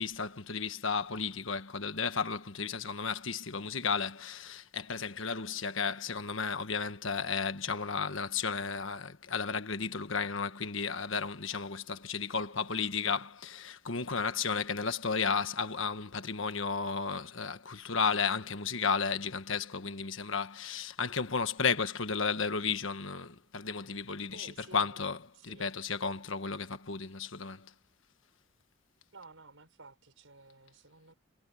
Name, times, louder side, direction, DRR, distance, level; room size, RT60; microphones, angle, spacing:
voice 1, 0.0-25.2 25.4-27.7, left 5 dB, 70° left, 1.4 m, -33 dB
voice 2, 24.3-25.0 25.3-25.7 29.1-31.1, right 3 dB, 70° right, 6.1 m, -53 dB
head